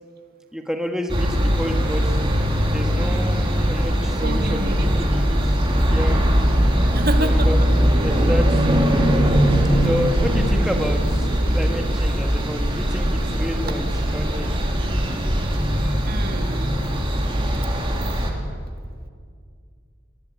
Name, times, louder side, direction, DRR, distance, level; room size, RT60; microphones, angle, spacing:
voice 1, 0.5-2.1 2.7-5.4 5.9-6.2 6.8-6.9 7.2-7.6 8.0-8.6 9.8-14.6, equal, 5° right, 3 dB, 1.5 m, -29 dB
sound 1, 1.1-18.3, equal, 25° right, 3.2 m, -20 dB
voice 2, 4.2-4.9 6.9-7.7 13.7-13.8 16.0-16.7, right 1 dB, 50° right, 6 dB, 1.9 m, -29 dB
23.0 x 22.0 x 8.4 m, 2.1 s
head